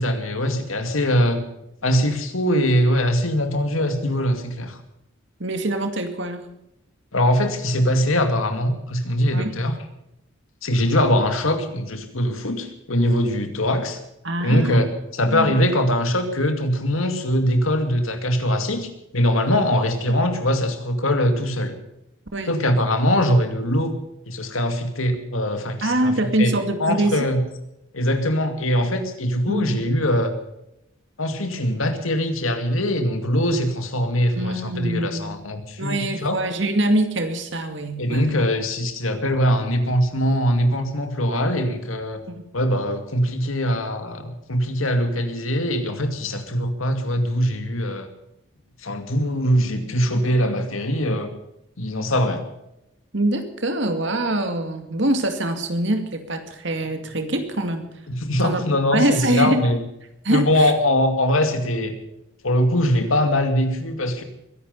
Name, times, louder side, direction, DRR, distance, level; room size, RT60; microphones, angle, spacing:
voice 1, 0.0-1.4 1.8-4.8 7.1-9.8 10.6-14.0 14.4-21.7 22.5-23.9 24.3-26.5 26.8-27.4 27.9-30.4 31.2-36.4 38.0-42.2 42.5-48.1 48.8-51.3 51.8-52.4 58.1-59.8 60.3-61.9 62.4-64.2, equal, 85° left, 7 dB, 2.4 m, -22 dB
voice 2, 5.4-6.4 9.3-9.5 14.2-14.9 15.3-15.6 22.3-22.6 25.8-27.3 29.5-29.9 34.4-35.3 35.8-38.4 42.3-42.4 53.1-57.9 58.4-58.6 58.9-59.7 60.2-60.7, right 1 dB, 60° right, 7 dB, 2.3 m, -24 dB
22.0 x 11.0 x 5.5 m, 0.85 s
head